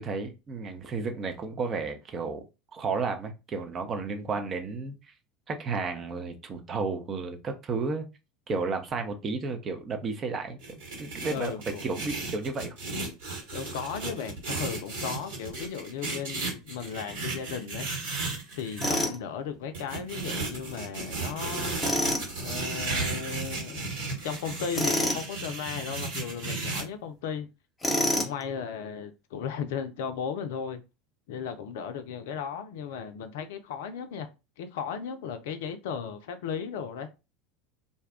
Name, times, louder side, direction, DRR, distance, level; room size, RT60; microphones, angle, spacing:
voice 1, 0.0-2.4 2.7-4.9 5.5-8.1 8.5-10.6 11.0-12.7, right 4 dB, 35° right, 0.7 m, -32 dB
sound 1, 10.6-19.0 19.7-26.8, right 3 dB, 70° right, 1.6 m, -34 dB
voice 2, 11.3-11.9 13.5-17.9 18.5-21.8 22.4-23.9 24.2-27.5 27.9-30.8 31.3-34.3 34.6-37.1, left 7 dB, 65° left, 0.4 m, -36 dB
Tools, 18.8-19.2 21.8-22.3 24.7-25.2 27.8-28.4, equal, 20° left, 1.0 m, -26 dB
2.6 x 2.3 x 3.4 m
hypercardioid pair, 80°, 0 cm